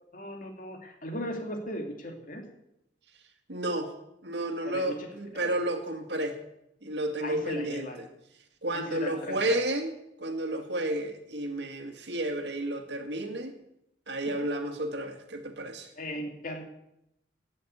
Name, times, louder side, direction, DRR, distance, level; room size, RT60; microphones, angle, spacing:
voice 1, 0.1-2.4 4.6-5.1 5.3-5.5 7.2-8.0 8.7-9.6 16.0-16.6, equal, 50° left, 3 dB, 2.5 m, -37 dB
voice 2, 3.5-3.9 4.2-6.4 6.8-8.1 8.6-9.9 10.2-13.5 14.1-15.9, right 1 dB, 75° right, 6 dB, 2.0 m, -31 dB
17.5 x 6.7 x 8.2 m, 0.83 s
head